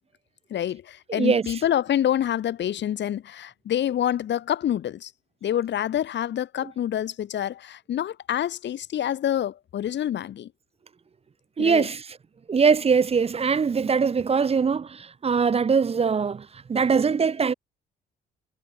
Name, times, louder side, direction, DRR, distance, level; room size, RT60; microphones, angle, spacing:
voice 1, 0.5-5.1 5.4-10.5 11.6-11.9, left 10 dB, 65° left, 1.6 m, -27 dB
voice 2, 1.1-1.4 11.6-12.2 12.5-17.5, right 5 dB, 30° right, 0.7 m, -22 dB
cardioid pair, 90°, 20 cm